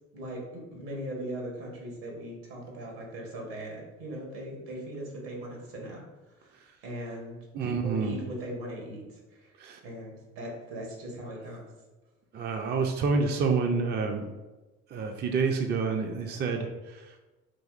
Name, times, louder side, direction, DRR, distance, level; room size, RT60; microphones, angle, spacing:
voice 1, 0.1-6.0 6.4-9.0 9.3-9.5 9.8-11.6, right 1 dB, 70° right, 0 dB, 1.2 m, -39 dB
voice 2, 7.5-8.1 9.6-9.8 12.3-14.2 14.9-16.7, right 4 dB, 30° right, 4 dB, 0.4 m, -28 dB
3.9 x 2.8 x 2.4 m, 1.1 s
hypercardioid pair, 55°, 35 cm